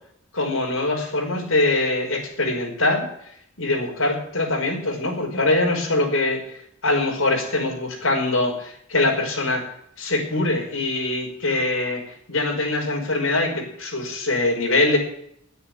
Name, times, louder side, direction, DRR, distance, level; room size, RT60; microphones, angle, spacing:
voice 1, 0.3-3.1 3.6-6.5 6.8-9.6 10.0-12.0 12.3-15.0, left 2 dB, 70° left, 0 dB, 5.5 m, -23 dB
11.0 x 10.0 x 9.5 m, 0.69 s
head